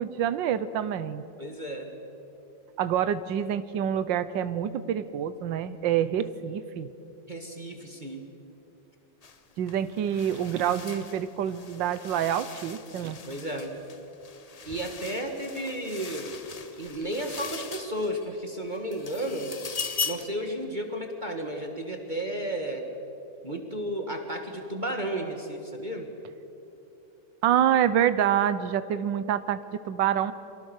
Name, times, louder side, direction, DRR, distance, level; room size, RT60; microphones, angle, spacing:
voice 1, 0.0-1.2 2.8-6.9 9.6-13.2 27.4-30.3, right 9 dB, 85° right, 13 dB, 1.5 m, -27 dB
voice 2, 1.4-1.9 7.3-8.3 13.2-13.7 14.7-16.4 16.8-19.6 20.0-22.8 23.4-26.1, right 1 dB, 25° right, 3 dB, 1.9 m, -33 dB
sound 1, 9.2-9.4 9.7-18.3 18.7-20.4, left 5 dB, 40° left, 0.5 m, -39 dB
29.0 x 24.0 x 6.5 m, 2.9 s
omnidirectional pair, 2.0 m